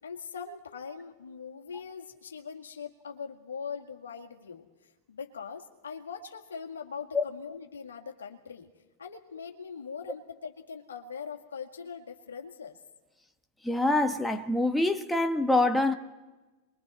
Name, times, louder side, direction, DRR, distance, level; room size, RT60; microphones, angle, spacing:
voice 1, 0.0-8.7 9.0-12.8, left 6 dB, 75° left, 1.9 m, -41 dB
voice 2, 13.6-15.9, left 2 dB, 5° left, 1.3 m, -25 dB
28.0 x 22.0 x 4.3 m
figure-of-eight pair, 90°, 0 cm